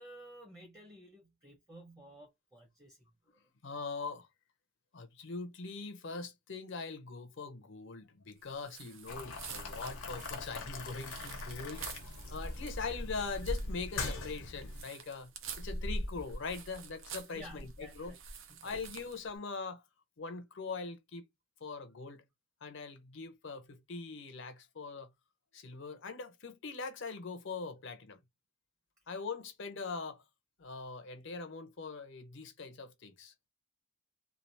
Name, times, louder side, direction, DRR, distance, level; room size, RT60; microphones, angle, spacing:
voice 1, 0.0-3.0 17.3-18.2 18.5-18.7, right 1 dB, 15° right, 0.9 m, -53 dB
voice 2, 3.6-4.3 4.9-11.9 12.3-18.2 18.6-19.8 20.2-21.2 21.6-22.2 22.6-25.1 25.5-28.2 29.1-30.2 30.6-33.3, left 4 dB, 55° left, 0.6 m, -42 dB
sound 1, 8.6-19.3, right 1 dB, 65° right, 0.6 m, -43 dB
Boiling, 9.1-14.8, left 3 dB, 90° left, 0.9 m, -43 dB
3.2 x 2.4 x 2.7 m
head